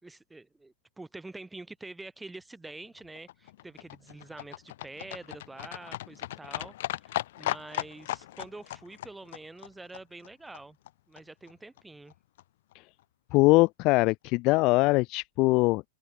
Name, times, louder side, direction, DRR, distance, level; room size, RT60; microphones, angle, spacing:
voice 1, 0.0-10.8 11.1-12.1, right 2 dB, 5° right, 6.0 m, -46 dB
Livestock farm animals working animals, 2.7-10.9 11.2-11.3 11.5-11.6 11.8-11.9 12.1-12.2 12.4-12.5 12.7-12.8 13.0-13.1 13.4-13.5, left 15 dB, 65° left, 6.1 m, -38 dB
voice 2, 13.3-15.8, left 24 dB, 40° left, 0.3 m, -22 dB
hypercardioid pair, 140°, 0 cm